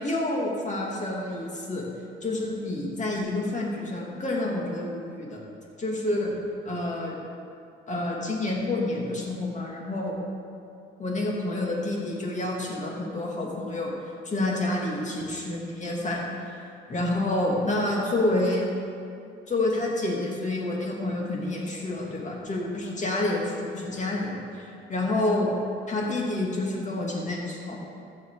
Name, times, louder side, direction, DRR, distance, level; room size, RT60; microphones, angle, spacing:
voice 1, 0.0-1.8 2.2-5.4 5.8-6.3 6.7-7.2 7.9-10.1 11.0-13.9 14.2-16.6 16.9-18.6 19.5-25.5 25.9-27.7, left 2 dB, 35° left, -2 dB, 2.4 m, -28 dB
15.0 x 6.0 x 4.8 m, 2.5 s
cardioid pair, 90°, 20 cm